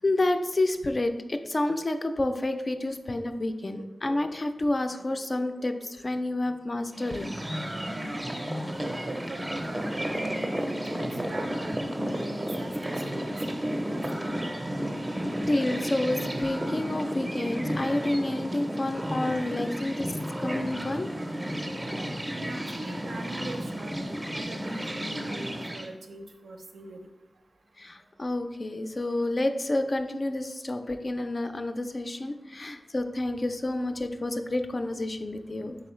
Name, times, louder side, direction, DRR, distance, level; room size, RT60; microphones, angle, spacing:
voice 1, 0.0-7.3 15.4-20.1 20.4-21.1 27.8-35.8, left 2 dB, 40° left, 7 dB, 0.3 m, -29 dB
sound 1, 6.9-25.9, equal, 20° right, 0.5 m, -32 dB
voice 2, 8.7-14.5 22.3-27.0, right 1 dB, 85° right, 4 dB, 0.5 m, -41 dB
3.8 x 3.6 x 3.0 m, 1.0 s
wide cardioid pair, 75°, 0 cm